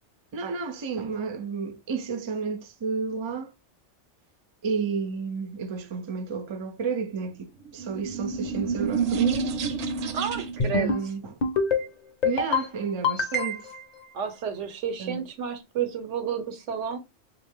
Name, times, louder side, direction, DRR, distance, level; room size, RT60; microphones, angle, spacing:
voice 1, 0.3-3.5 4.6-9.6 10.7-11.3 12.2-13.7 15.0-15.2, right 5 dB, 45° right, 0.3 m, -31 dB
sound 1, 7.6-10.8, right 5 dB, 70° right, 0.9 m, -28 dB
voice 2, 10.1-10.9 14.1-17.0, right 7 dB, 90° right, 1.1 m, -31 dB
sound 2, 10.6-11.0 11.4-11.9 12.2-12.7 13.0-13.8, left 4 dB, 45° left, 0.6 m, -25 dB
3.6 x 2.5 x 3.5 m
omnidirectional pair, 1.2 m